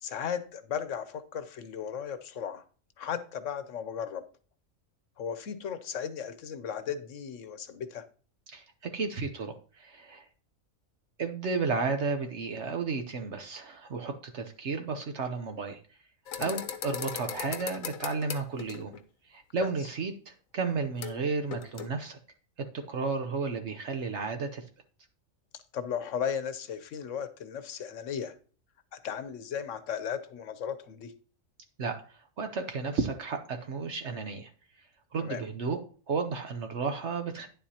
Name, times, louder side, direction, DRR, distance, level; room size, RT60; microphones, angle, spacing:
voice 1, 0.0-2.6 3.0-4.2 5.2-8.0 16.3-16.6 25.5-28.3 28.9-31.1 35.2-35.4, left 8 dB, 70° left, 1.1 m, -36 dB
voice 2, 8.9-10.3 11.2-15.8 16.4-18.9 19.3-22.2 22.6-24.6 31.8-34.5 35.1-35.8 36.1-37.5, right 4 dB, 60° right, 1.1 m, -33 dB
sound 1, 16.3-19.0 21.0-21.2 21.5-21.9, left 8 dB, 90° left, 1.2 m, -38 dB
10.0 x 7.5 x 2.9 m
omnidirectional pair, 1.4 m